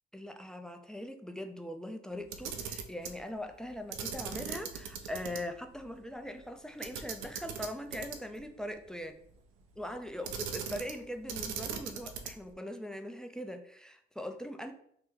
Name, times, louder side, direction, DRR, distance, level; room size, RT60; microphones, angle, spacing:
voice 1, 0.1-9.1 9.8-14.7, left 1 dB, 5° left, 6 dB, 0.3 m, -41 dB
Camera, 2.2-3.2 3.9-5.4 5.7-5.8 6.8-8.4 10.2-11.0 11.3-12.5, right 7 dB, 90° right, 0.4 m, -39 dB
2.9 x 2.1 x 3.6 m, 0.67 s
cardioid pair, 90°, 20 cm